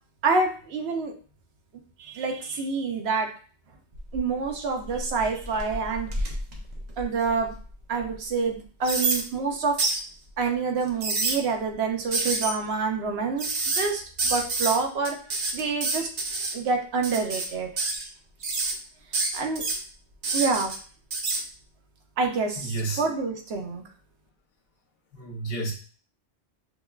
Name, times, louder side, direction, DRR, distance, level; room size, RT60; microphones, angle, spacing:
voice 1, 0.2-1.1 2.0-3.3 4.1-6.3 7.0-7.5 7.9-9.8 10.4-15.2 15.5-16.1 16.5-17.7 19.3-19.6 20.3-20.7 22.2-23.8, right 4 dB, 75° right, 3 dB, 0.9 m, -27 dB
sound 1, 3.9-4.4 4.9-7.5 8.0-8.1 8.8-9.2 9.8-10.0 10.8-11.4 12.1-12.5 13.4-13.9 14.2-14.8 15.0-16.5 17.0-17.5 17.8-18.1 18.4-18.7 19.1-19.8 20.2-20.8 21.1-21.4, right 3 dB, 50° right, 0.6 m, -28 dB
voice 2, 22.6-23.0 25.1-25.7, right 3 dB, 65° left, -1 dB, 1.0 m, -30 dB
5.0 x 2.2 x 2.3 m, 0.40 s
omnidirectional pair, 1.1 m